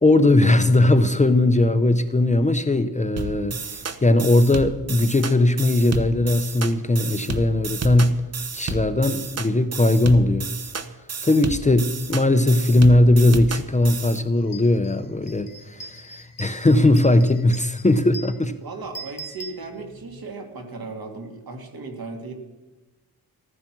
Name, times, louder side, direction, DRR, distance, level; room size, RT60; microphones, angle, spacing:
voice 1, 0.0-8.2 8.5-10.5 11.2-18.5, left 2 dB, 20° left, 9 dB, 0.6 m, -19 dB
sound 1, 3.2-14.2, right 4 dB, 40° right, 0.9 m, -31 dB
sound 2, 13.9-14.0 14.4-20.2, right 1 dB, 55° left, 1.4 m, -42 dB
voice 2, 18.6-22.3, right 3 dB, 65° right, 3 dB, 2.4 m, -36 dB
14.5 x 14.0 x 6.1 m, 1.2 s
wide cardioid pair, 170°, 38 cm